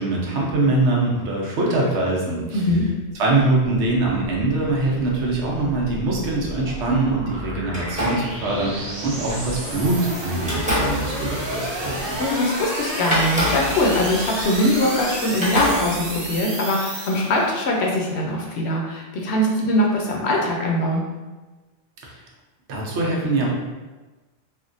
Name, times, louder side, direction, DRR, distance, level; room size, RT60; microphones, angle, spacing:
voice 1, 0.0-2.6 3.1-12.2 22.0-22.1 22.7-23.5, right 2 dB, 80° right, -2 dB, 1.0 m, -23 dB
voice 2, 2.5-2.9 12.2-21.0, left 1 dB, 75° left, -1 dB, 0.9 m, -22 dB
sound 1, 3.1-17.7, right 1 dB, 45° right, 0.3 m, -32 dB
sound 2, 5.6-6.8 7.7-9.9 10.4-12.3 12.6-12.7 13.1-15.1 15.4-16.4, equal, 5° right, 0.8 m, -28 dB
3.4 x 2.2 x 2.5 m, 1.2 s
omnidirectional pair, 1.2 m